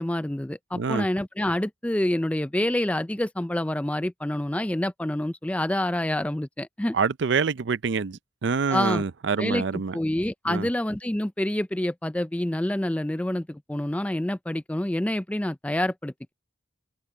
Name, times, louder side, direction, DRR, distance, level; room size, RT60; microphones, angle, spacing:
voice 1, 0.0-7.0 8.7-9.0 9.4-9.6 9.9-16.3, left 1 dB, 5° left, 0.4 m, -27 dB
voice 2, 0.7-1.1 6.9-10.0 10.5-10.7, right 5 dB, 75° right, 0.5 m, -26 dB
head